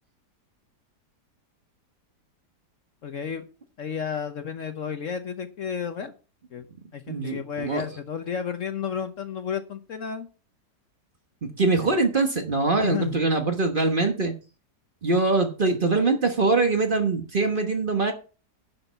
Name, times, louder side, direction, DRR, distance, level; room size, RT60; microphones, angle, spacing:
voice 1, 3.0-3.4 3.8-6.1 6.5-6.6 6.9-10.3 11.8-11.9 12.8-13.2, left 7 dB, 55° left, 8 dB, 1.1 m, -32 dB
voice 2, 7.1-7.9 11.4-14.3 15.0-18.1, right 3 dB, 35° right, 5 dB, 1.2 m, -23 dB
11.0 x 5.4 x 5.7 m, 0.36 s
omnidirectional pair, 1.8 m